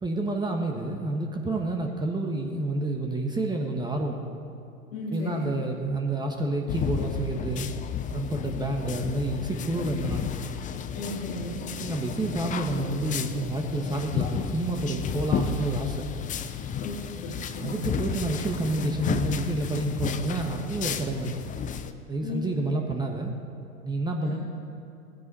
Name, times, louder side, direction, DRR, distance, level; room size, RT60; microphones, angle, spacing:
voice 1, 0.0-4.2 5.1-7.7 8.1-10.3 11.8-16.1 17.6-21.4 22.1-23.3 23.8-24.4, right 2 dB, 10° right, 2 dB, 1.3 m, -29 dB
voice 2, 4.9-5.4 10.9-11.6 16.8-18.0 22.2-22.4 24.2-24.4, left 1 dB, 70° left, -6 dB, 3.3 m, -36 dB
sound 1, 6.7-21.9, left 8 dB, 20° left, 0.6 m, -32 dB
19.0 x 15.5 x 4.3 m, 2.7 s
hypercardioid pair, 100°, 42 cm